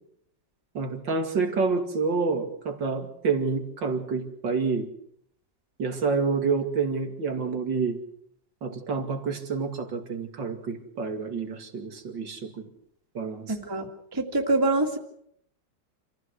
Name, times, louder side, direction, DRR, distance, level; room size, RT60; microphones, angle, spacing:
voice 1, 0.7-4.9 5.8-8.0 8.6-12.7 13.1-13.5, right 4 dB, 85° right, 5 dB, 3.1 m, -28 dB
voice 2, 13.5-15.0, right 2 dB, 15° right, 2 dB, 2.2 m, -25 dB
27.0 x 15.5 x 8.1 m, 0.71 s
omnidirectional pair, 1.9 m